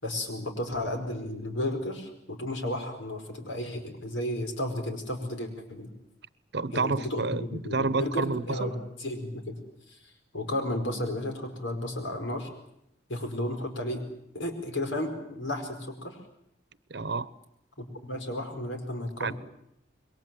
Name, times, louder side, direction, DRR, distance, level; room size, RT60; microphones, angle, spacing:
voice 1, 0.0-5.9 6.7-9.6 9.9-10.0 10.3-12.5 13.1-14.0 14.3-16.2 17.8-19.3, left 1 dB, 90° left, 6 dB, 5.0 m, -33 dB
voice 2, 6.5-8.7 16.9-17.3 19.2-19.3, right 3 dB, 60° right, 17 dB, 0.9 m, -29 dB
27.0 x 22.5 x 7.7 m, 0.77 s
head